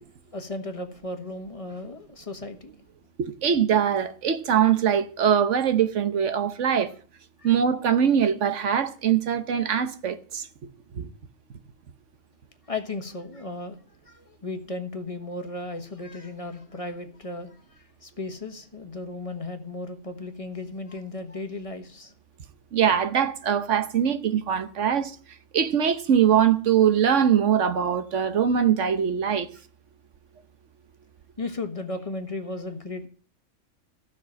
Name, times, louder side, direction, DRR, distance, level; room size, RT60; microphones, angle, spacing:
voice 1, 0.3-2.7 7.4-7.5 12.7-13.8 14.0-22.1 31.4-33.1, left 2 dB, 25° left, 1.4 m, -35 dB
voice 2, 3.2-6.9 7.4-10.5 10.9-11.1 22.7-25.1 25.5-29.5, right 8 dB, 60° right, 1.2 m, -22 dB
14.5 x 6.1 x 7.5 m
omnidirectional pair, 1.5 m